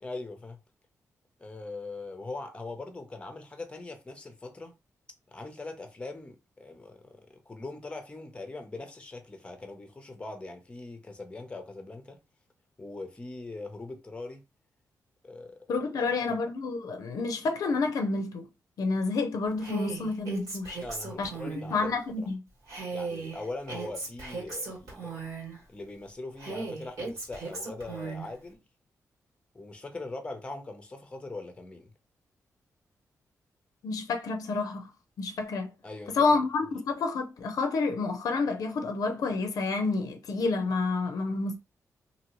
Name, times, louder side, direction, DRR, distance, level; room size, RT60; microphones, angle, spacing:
voice 1, 0.0-0.6 1.4-4.7 5.3-12.2 12.8-14.4 15.2-15.7 16.3-16.4 20.8-22.3 22.9-25.2 25.7-28.6 29.5-31.9 35.8-36.3, left 2 dB, 20° left, 0.6 m, -41 dB
voice 2, 15.7-18.5 18.8-20.8 21.2-21.3 21.7-22.4 33.8-34.9 35.2-35.7 36.1-41.6, left 3 dB, 80° left, 0.5 m, -29 dB
Female speech woman speaking, 19.6-21.8 22.7-25.6 26.4-28.3, right 4 dB, 75° right, 1.7 m, -37 dB
2.7 x 2.7 x 3.0 m
wide cardioid pair, 120°, 6 cm